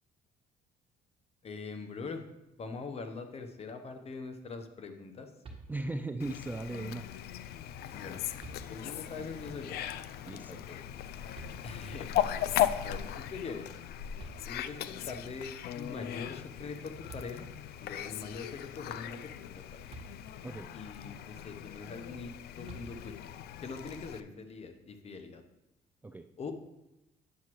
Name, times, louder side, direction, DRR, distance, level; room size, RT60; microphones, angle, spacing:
voice 1, 1.4-2.2 2.6-5.3 7.9-8.2 8.7-9.8 10.3-10.8 11.6-12.1 12.8-13.7 14.4-17.5 17.8-19.8 20.7-23.2 23.6-25.4 26.4-26.5, left 4 dB, 35° left, 7 dB, 0.9 m, -43 dB
sound 1, 5.4-6.2 7.7-7.8 8.4-9.2 11.3-12.1 13.8-13.9 14.2-15.0 16.7-16.8 17.1-17.8 19.9-20.7 22.6-23.4, right 3 dB, 35° right, 1.5 m, -51 dB
voice 2, 5.7-7.0 10.3-10.5 20.4-20.7 26.0-26.3, right 2 dB, 10° right, 6 dB, 0.3 m, -37 dB
Fowl, 6.2-24.2, left 11 dB, 70° left, 0.4 m, -38 dB
9.6 x 7.2 x 3.1 m, 0.93 s
cardioid pair, 110°, 17 cm